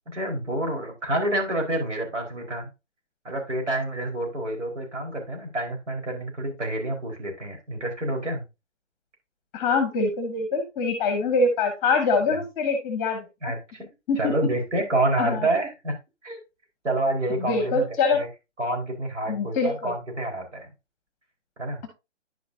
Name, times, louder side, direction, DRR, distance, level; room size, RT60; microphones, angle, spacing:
voice 1, 0.1-2.7 3.2-8.4 13.4-13.9 14.2-16.0 16.2-16.4 16.8-17.9 18.1-18.3 18.6-20.7 21.6-21.8, right 1 dB, 75° right, 2 dB, 4.3 m, -28 dB
voice 2, 9.5-13.5 14.1-14.3 15.2-15.4 17.4-18.2 19.3-19.9, left 3 dB, 15° left, 7 dB, 1.0 m, -24 dB
10.5 x 5.7 x 2.6 m, 0.25 s
hypercardioid pair, 155°, 37 cm